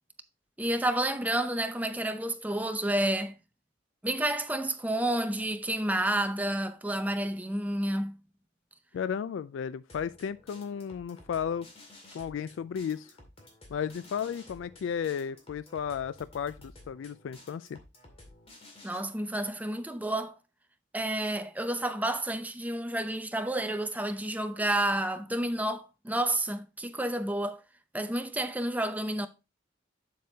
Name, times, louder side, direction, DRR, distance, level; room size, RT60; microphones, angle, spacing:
voice 1, 0.6-3.3 4.0-8.2 18.8-20.4 20.9-27.6 27.9-29.3, right 1 dB, 10° right, 0.6 m, -30 dB
voice 2, 8.9-11.7 12.1-13.1 13.7-17.8, left 7 dB, 75° left, 0.3 m, -34 dB
sound 1, 9.9-19.0, left 2 dB, 30° left, 2.2 m, -53 dB
7.5 x 7.1 x 2.8 m
head